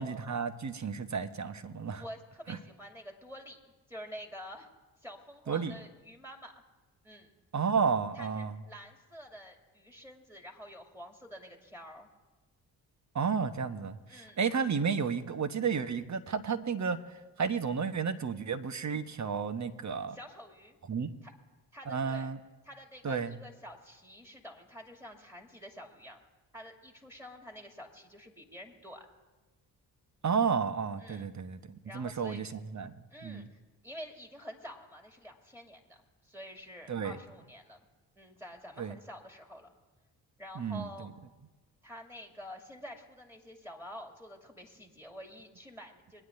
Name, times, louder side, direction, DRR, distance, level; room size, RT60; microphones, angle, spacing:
voice 1, 0.0-2.0 2.5-2.6 5.5-5.7 7.5-8.6 13.1-17.0 17.4-20.2 20.9-21.1 21.9-22.4 23.0-23.4 30.2-32.9 33.2-33.5 36.9-37.2 38.8-39.0 40.5-40.9, right 6 dB, 35° right, 9 dB, 1.1 m, -32 dB
voice 2, 2.0-3.6 3.9-4.7 5.0-6.5 7.0-7.3 8.1-12.1 14.1-14.4 20.1-20.8 21.2-21.3 21.7-22.3 22.6-26.2 26.5-29.1 31.0-31.3 31.8-32.4 33.1-37.8 38.2-39.7 40.4-41.1 41.8-46.2, equal, 5° right, 2 dB, 2.5 m, -48 dB
23.0 x 9.7 x 2.7 m, 1.2 s
hypercardioid pair, 40°, 50 cm